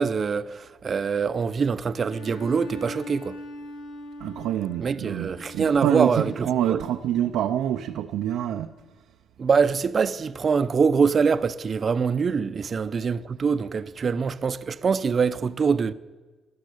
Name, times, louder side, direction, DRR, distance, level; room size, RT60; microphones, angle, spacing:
voice 1, 0.0-3.4 4.8-6.8 9.4-15.9, right 5 dB, 45° right, 0.7 m, -24 dB
Bowed string instrument, 2.0-6.7, equal, 85° left, 1.8 m, -41 dB
voice 2, 4.2-8.7, right 11 dB, 85° right, 0.6 m, -26 dB
14.5 x 11.0 x 8.4 m
cardioid pair, 90°, 0 cm